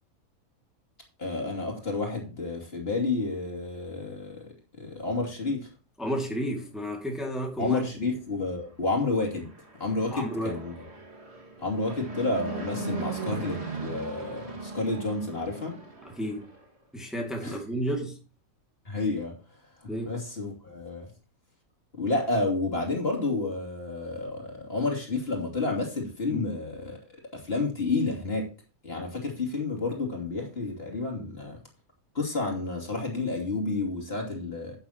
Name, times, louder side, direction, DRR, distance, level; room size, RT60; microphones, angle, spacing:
voice 1, 1.2-5.7 7.6-9.5 9.8-10.7 11.6-15.8 17.4-17.6 18.8-19.3 20.0-21.1 21.9-27.0 27.3-28.5 28.8-31.6 32.1-34.8, left 3 dB, 45° left, 3.0 m, -30 dB
voice 2, 6.0-8.1 10.1-10.6 16.0-16.5 16.9-18.2 19.9-20.1 26.3-26.5, equal, ahead, 2.2 m, -32 dB
Fixed-wing aircraft airplane, 9.3-16.6, right 3 dB, 50° right, 2.4 m, -38 dB
11.5 x 9.5 x 3.0 m
omnidirectional pair, 1.5 m